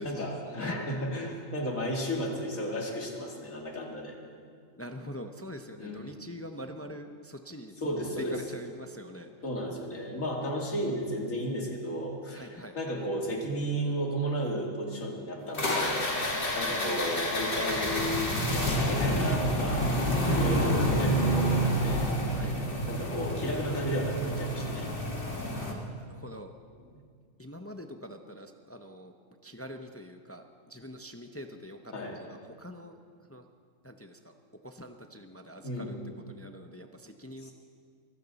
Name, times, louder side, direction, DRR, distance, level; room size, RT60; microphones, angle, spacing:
voice 1, 0.0-4.2 5.8-6.1 7.7-8.5 9.4-19.9 20.3-24.9 26.7-27.0 31.9-32.2 35.6-36.1 37.4-37.5, equal, 85° left, 0 dB, 2.6 m, -34 dB
voice 2, 4.8-7.8 8.3-9.3 12.4-12.8 16.8-17.0 22.4-22.5 25.5-26.5 27.4-29.1 29.4-30.4 30.7-31.8 32.6-32.9 33.3-33.4 33.8-34.3 34.6-35.9 36.3-37.5, equal, 20° left, 6 dB, 0.4 m, -44 dB
sound 1, 15.5-25.7, equal, 45° left, 2.0 m, -28 dB
23.0 x 14.5 x 4.1 m, 2.1 s
omnidirectional pair, 1.4 m